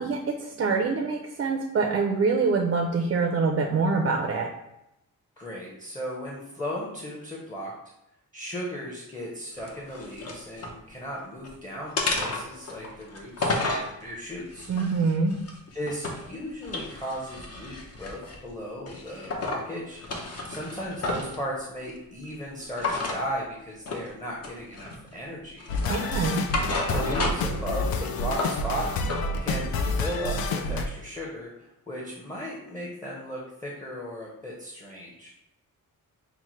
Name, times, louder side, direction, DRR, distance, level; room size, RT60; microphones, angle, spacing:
voice 1, 0.0-4.5 14.7-15.4 25.9-26.5, right 4 dB, 40° right, 2 dB, 0.4 m, -25 dB
voice 2, 5.4-7.7 8.3-14.7 15.7-20.0 20.5-25.7 26.9-28.9 29.4-35.3, equal, 10° left, -4 dB, 0.7 m, -36 dB
sound 1, 9.6-10.8 11.2-11.5 12.0-13.9 14.5-16.3 16.6-18.4 18.9-19.6 20.0-21.4 22.8-23.2 23.9-24.1 24.4-25.1 25.6-27.6 27.9-29.2, left 2 dB, 45° left, 0.7 m, -32 dB
sound 2, 25.7-30.9, left 2 dB, 85° left, 0.5 m, -28 dB
5.6 x 2.1 x 3.0 m, 0.86 s
cardioid pair, 105°, 35 cm